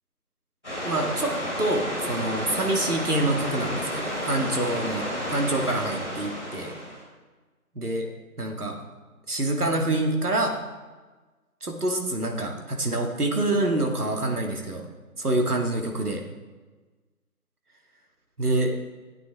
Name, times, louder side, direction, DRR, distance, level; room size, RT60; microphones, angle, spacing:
sound 1, 0.6-7.0, equal, 5° right, 2.1 m, -31 dB
voice 1, 0.8-6.7 7.8-8.1 8.4-8.8 9.3-10.5 11.6-14.8 15.2-16.2 18.4-18.7, right 1 dB, 75° right, 2 dB, 2.1 m, -26 dB
13.5 x 9.2 x 3.5 m, 1.3 s
figure-of-eight pair, 170°, 45 cm